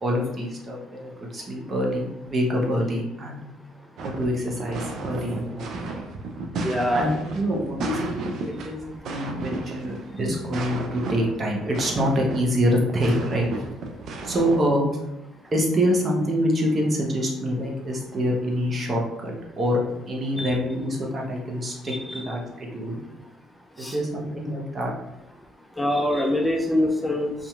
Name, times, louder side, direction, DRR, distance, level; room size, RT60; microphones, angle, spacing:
voice 1, 0.0-3.4 4.0-6.0 6.9-8.8 9.1-13.5 14.2-14.9 15.5-19.8 20.1-23.0 23.8-24.9, equal, 40° right, -1 dB, 0.8 m, -26 dB
sound 1, 4.0-14.6, right 3 dB, 60° right, 0.4 m, -33 dB
voice 2, 6.6-7.1 20.4-20.5 21.9-22.2 23.8-24.0 25.8-27.3, left 1 dB, 5° left, 1 dB, 0.4 m, -24 dB
2.7 x 2.5 x 2.3 m, 0.87 s
hypercardioid pair, 60°, 0 cm